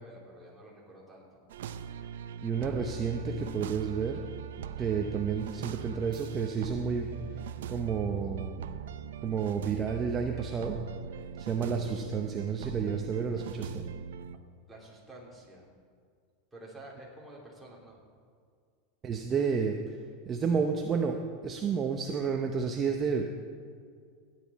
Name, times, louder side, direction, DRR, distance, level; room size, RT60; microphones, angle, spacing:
voice 1, 0.0-1.4 14.7-15.7 16.5-18.0, right 1 dB, 5° right, -5 dB, 2.8 m, -50 dB
sound 1, 1.5-14.4, right 8 dB, 90° right, 0.5 m, -41 dB
voice 2, 2.4-4.2 4.8-8.6 9.2-10.8 11.4-13.8 19.0-21.2 21.4-23.3, right 6 dB, 25° right, 3 dB, 0.8 m, -31 dB
16.5 x 9.4 x 4.2 m, 2.1 s
supercardioid pair, 150°, 0 cm